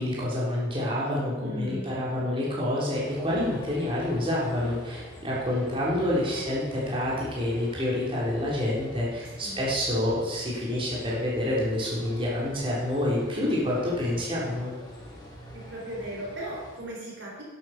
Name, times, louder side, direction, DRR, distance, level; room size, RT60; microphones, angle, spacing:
voice 1, 0.0-14.7, left 1 dB, 30° right, -6 dB, 3.9 m, -28 dB
voice 2, 1.4-1.9 9.4-9.6 15.5-17.4, right 1 dB, 65° right, -3 dB, 3.6 m, -37 dB
sound 1, 2.9-16.8, left 1 dB, 20° left, 3.2 m, -46 dB
11.0 x 9.2 x 6.1 m, 1.2 s
head